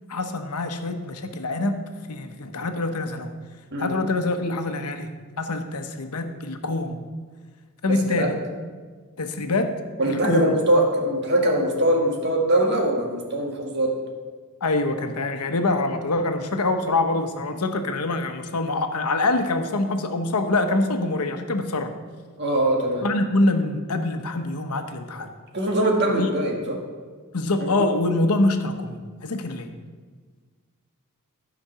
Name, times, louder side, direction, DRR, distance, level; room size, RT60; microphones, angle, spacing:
voice 1, 0.1-1.8 2.1-3.3 3.8-5.1 5.4-7.0 7.8-8.3 9.2-9.8 10.1-10.5 14.6-21.9 23.0-25.3 26.2-26.3 27.3-29.7, left 2 dB, 85° left, 7 dB, 0.9 m, -25 dB
voice 2, 7.9-8.3 10.0-14.0 22.4-23.1 25.5-26.8, right 1 dB, 50° right, 1 dB, 1.7 m, -22 dB
13.0 x 5.1 x 5.7 m, 1.5 s
head